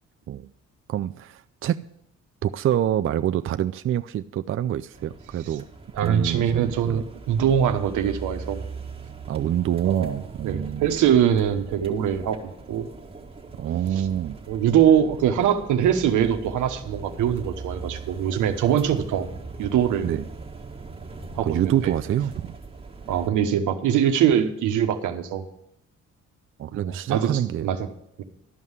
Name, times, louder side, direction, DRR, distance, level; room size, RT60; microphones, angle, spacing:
voice 1, 0.9-1.8 2.4-5.6 6.0-7.0 9.3-10.9 13.5-14.4 20.0-20.2 21.4-22.6 26.6-27.7, right 11 dB, 45° right, 10 dB, 0.4 m, -26 dB
sound 1, 4.9-23.3, right 4 dB, 20° right, 1.6 m, -40 dB
voice 2, 5.9-8.6 9.8-10.2 10.4-12.9 14.5-19.3 19.6-20.1 21.3-21.9 23.1-25.4 26.7-27.9 28.2-28.3, right 9 dB, 85° right, 6 dB, 1.2 m, -23 dB
12.5 x 5.6 x 8.0 m, 0.76 s
cardioid pair, 90°, 30 cm